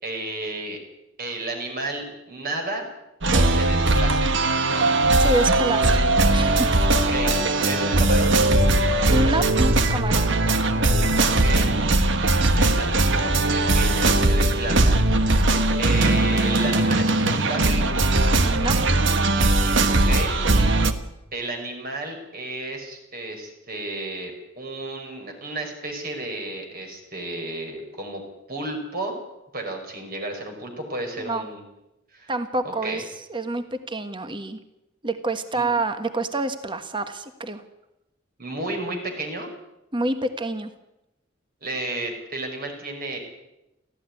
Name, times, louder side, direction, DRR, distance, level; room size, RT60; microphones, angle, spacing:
voice 1, 0.0-0.8 1.2-2.9 3.3-4.3 6.9-8.4 11.2-11.7 12.5-15.0 15.8-17.8 19.9-20.3 21.3-28.2 28.5-29.2 29.5-31.6 32.1-32.3 32.8-33.0 35.6-35.7 38.4-39.5 41.6-43.2, right 2 dB, 50° right, 3 dB, 5.1 m, -32 dB
sound 1, 3.2-20.9, right 2 dB, 65° right, 1.5 m, -20 dB
voice 2, 5.2-6.7 9.1-10.3 18.4-18.8 31.2-31.5 32.3-33.0 33.3-34.6 35.0-37.6 39.9-40.7, right 2 dB, 25° right, 9 dB, 1.4 m, -27 dB
18.5 x 15.0 x 9.8 m, 0.92 s
head